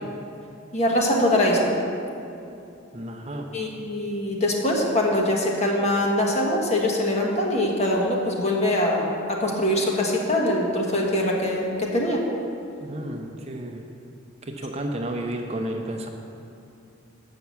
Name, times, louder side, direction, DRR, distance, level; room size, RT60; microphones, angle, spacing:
voice 1, 0.7-1.7 3.5-12.2, left 1 dB, 35° left, -1 dB, 1.3 m, -23 dB
voice 2, 2.9-3.5 12.8-13.9 14.4-16.1, right 1 dB, 30° right, 2 dB, 0.7 m, -32 dB
7.8 x 5.8 x 7.1 m, 2.7 s
head